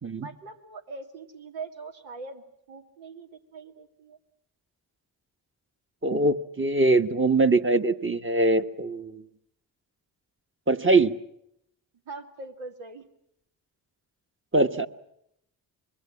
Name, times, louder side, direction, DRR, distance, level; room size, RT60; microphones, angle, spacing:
voice 1, 0.2-4.2 12.1-13.1, right 3 dB, 75° right, 4 dB, 2.6 m, -42 dB
voice 2, 6.0-9.2 10.7-11.2 14.5-14.9, right 2 dB, 25° right, 7 dB, 1.6 m, -22 dB
25.0 x 22.0 x 8.6 m, 0.78 s
hypercardioid pair, 40°, 46 cm